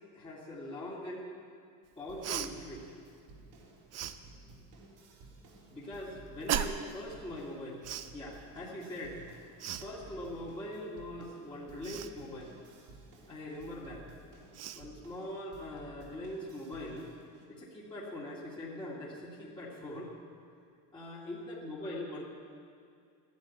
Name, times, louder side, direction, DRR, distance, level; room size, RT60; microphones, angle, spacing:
voice 1, 0.1-1.3 2.0-2.8 5.7-7.8 8.1-9.3 9.8-12.5 13.3-14.0 14.8-17.1 17.5-20.1 20.9-22.2, left 1 dB, 10° left, -6 dB, 2.0 m, -42 dB
sound 1, 2.1-17.4, right 2 dB, 80° right, 3.7 m, -55 dB
Cough, 2.2-2.5 3.9-4.1 6.5-6.9 7.8-8.1 9.6-9.9 11.8-12.1 14.0-14.1 14.5-14.8, right 9 dB, 40° right, 0.7 m, -35 dB
13.5 x 11.0 x 8.9 m, 2.3 s
cardioid pair, 155°, 42 cm